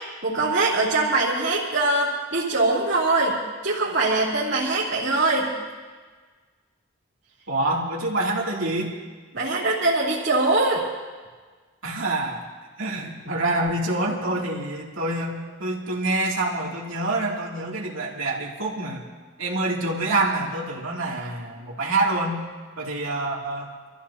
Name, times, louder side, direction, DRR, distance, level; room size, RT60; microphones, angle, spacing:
voice 1, 0.2-3.3 3.6-5.5 9.3-10.8, right 2 dB, 55° right, -10 dB, 3.2 m, -22 dB
voice 2, 7.5-8.9 11.8-12.4 12.8-19.0 19.4-22.4 22.8-23.7, right 2 dB, 90° right, -3 dB, 2.8 m, -26 dB
27.0 x 14.5 x 2.9 m, 1.4 s
head